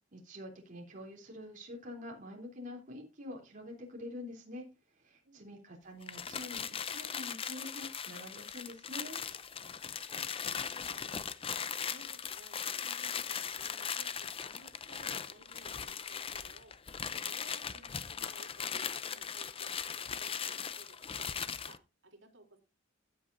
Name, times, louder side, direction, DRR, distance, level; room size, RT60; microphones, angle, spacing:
voice 1, 0.1-4.6 4.9-9.2, left 1 dB, 40° right, -1 dB, 3.4 m, -46 dB
voice 2, 5.2-5.7 10.1-11.5 11.9-16.7 17.2-22.6, right 2 dB, 65° right, 3 dB, 3.4 m, -59 dB
sound 1, 6.0-21.8, left 7 dB, 30° left, 0.6 m, -39 dB
15.5 x 8.3 x 2.7 m, 0.28 s
head